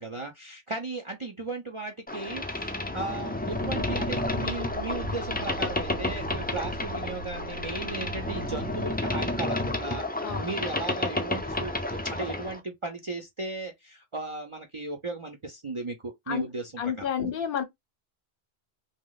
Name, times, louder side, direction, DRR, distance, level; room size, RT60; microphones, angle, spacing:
voice 1, 0.0-17.3, right 3 dB, 35° right, 0.5 m, -36 dB
Boat Water vehicle, 2.1-12.6, left 2 dB, 15° left, 0.4 m, -31 dB
sound 1, 3.5-8.9, right 3 dB, 65° right, 0.8 m, -40 dB
voice 2, 16.8-17.6, left 8 dB, 65° left, 0.9 m, -30 dB
2.9 x 2.1 x 3.9 m
omnidirectional pair, 1.0 m